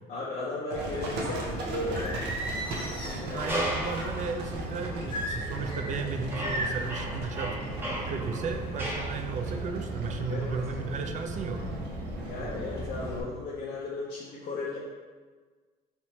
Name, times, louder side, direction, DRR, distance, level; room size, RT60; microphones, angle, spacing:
voice 1, 0.1-2.2 3.2-3.5 10.3-10.6 12.2-14.8, left 3 dB, 60° left, -5 dB, 0.6 m, -35 dB
Livestock farm animals working animals, 0.7-13.2, right 2 dB, 80° right, 0.7 m, -36 dB
Singing, 1.9-4.1 5.1-5.9 6.4-6.9, equal, 25° left, 0.9 m, -35 dB
voice 2, 3.3-7.6 8.1-11.6, right 4 dB, 45° right, 6 dB, 0.4 m, -34 dB
sound 1, 3.5-4.1 4.8-4.9 5.6-6.0 6.3-9.2, right 1 dB, 15° right, 0.7 m, -35 dB
3.2 x 2.9 x 3.1 m, 1.4 s
cardioid pair, 110°, 17 cm